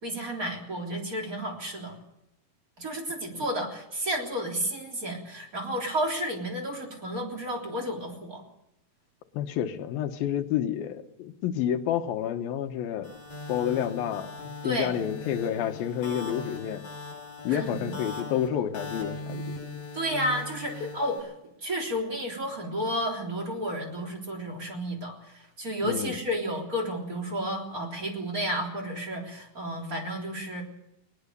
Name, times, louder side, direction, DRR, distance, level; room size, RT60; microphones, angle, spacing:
voice 1, 0.0-2.0 2.8-8.4 14.6-14.9 17.5-17.9 19.9-21.1 21.6-30.6, equal, 25° right, 3.7 m, -32 dB
voice 2, 9.3-13.1 13.5-16.9 17.4-19.6 20.8-20.9 25.8-26.2, left 10 dB, 85° left, 2.9 m, -29 dB
sound 1, 13.0-21.2, left 2 dB, 35° left, 8.2 m, -39 dB
20.5 x 20.0 x 6.8 m
omnidirectional pair, 4.1 m